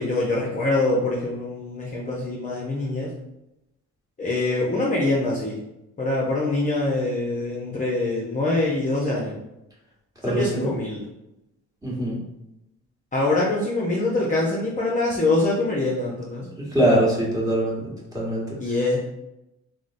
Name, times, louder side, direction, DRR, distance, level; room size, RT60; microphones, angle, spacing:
voice 1, 0.0-3.1 4.2-5.6 6.0-9.4 10.3-11.0 13.1-16.5 18.6-19.0, left 2 dB, 25° left, -4 dB, 0.6 m, -24 dB
voice 2, 10.2-10.7 11.8-12.2 16.7-17.8 18.1-18.6, right 1 dB, 10° right, -6 dB, 1.2 m, -22 dB
3.6 x 2.1 x 2.5 m, 0.88 s
cardioid pair, 90°, 30 cm